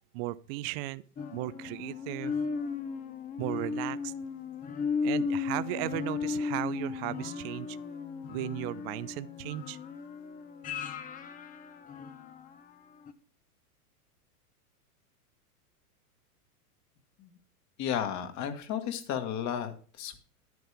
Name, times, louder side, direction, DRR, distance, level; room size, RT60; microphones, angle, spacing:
voice 1, 0.1-1.0 1.3-2.3 3.4-4.1 5.0-7.8 8.3-9.8, right 18 dB, 40° right, 17 dB, 0.5 m, -36 dB
sound 1, 1.2-12.6 13.1-13.2, left 5 dB, 20° left, 0.7 m, -35 dB
voice 2, 17.8-20.2, left 9 dB, 35° left, 7 dB, 1.7 m, -33 dB
11.0 x 9.4 x 3.4 m, 0.41 s
hypercardioid pair, 115°, 47 cm